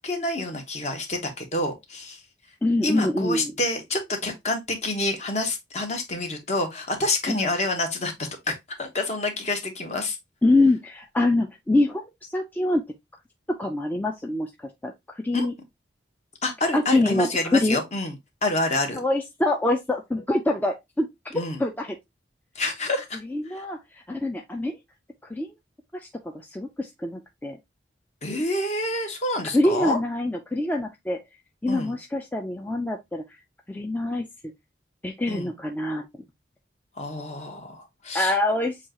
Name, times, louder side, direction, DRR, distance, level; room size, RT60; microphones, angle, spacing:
voice 1, 0.0-2.2 2.8-10.2 15.3-15.5 16.4-18.2 18.4-19.0 21.3-21.6 22.5-23.2 23.5-23.6 28.2-30.0 31.7-31.9 35.3-35.5 37.0-38.3, left 2 dB, 40° left, 1.2 m, -28 dB
voice 2, 2.6-3.5 7.3-7.5 10.4-12.8 13.5-14.5 14.8-15.5 16.7-17.8 18.9-22.0 23.3-24.8 25.2-25.5 26.2-27.6 29.5-31.2 31.6-33.2 33.7-34.3 35.0-36.1 38.1-38.8, left 2 dB, 10° left, 0.4 m, -25 dB
7.2 x 2.4 x 2.9 m
head